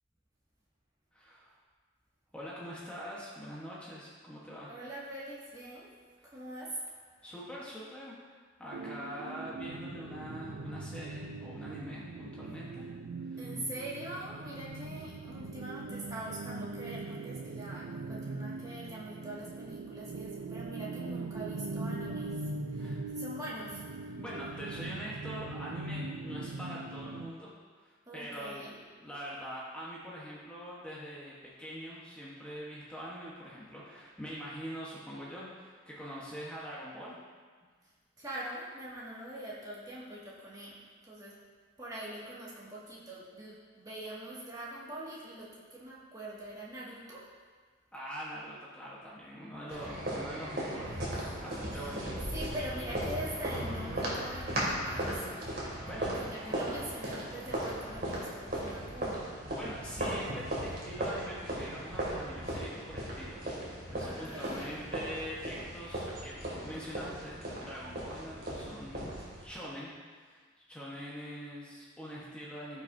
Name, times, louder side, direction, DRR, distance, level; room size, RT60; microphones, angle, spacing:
voice 1, 1.1-1.5 2.3-4.7 6.2-6.4 7.2-12.9 13.2-13.5 14.8-14.9 22.7-23.0 24.2-27.5 27.8-37.2 47.9-52.0 55.4-56.1 59.5-69.1 69.4-72.8, equal, 5° left, -7 dB, 1.2 m, -44 dB
voice 2, 4.7-5.9 6.3-6.7 13.4-22.3 22.7-24.2 28.1-28.7 38.2-40.8 41.0-41.3 41.8-47.2 51.2-52.0 52.3-55.3 55.9-59.3 64.0-64.7, right 1 dB, 20° right, -7 dB, 2.0 m, -43 dB
sound 1, 8.7-27.3, right 3 dB, 85° right, 0.4 m, -41 dB
sound 2, 49.7-69.4, right 1 dB, 50° right, 2.4 m, -37 dB
15.5 x 6.0 x 2.7 m, 1.5 s
head